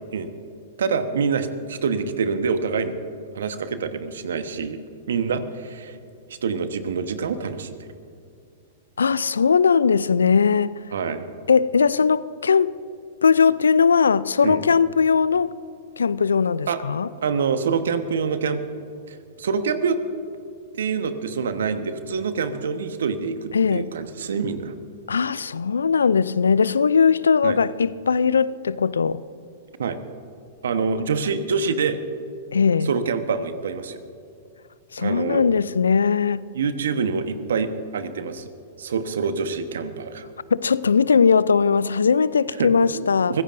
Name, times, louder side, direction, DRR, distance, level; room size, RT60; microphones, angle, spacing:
voice 1, 0.8-2.9 3.3-4.8 5.1-6.0 6.3-7.9 10.9-11.3 14.4-14.6 16.7-16.8 17.2-18.6 19.1-20.0 20.7-24.8 27.4-27.6 29.8-30.0 30.6-32.0 32.8-34.0 35.0-35.4 36.5-38.5 38.8-40.3 42.6-43.4, right 5 dB, 70° right, 1.2 m, -26 dB
voice 2, 9.0-10.8 11.5-12.7 13.2-15.5 16.0-17.1 23.5-23.9 25.1-29.2 32.5-32.9 34.9-36.5 40.5-43.3, left 5 dB, 80° left, 0.4 m, -19 dB
24.0 x 15.5 x 2.6 m
figure-of-eight pair, 105°, 0 cm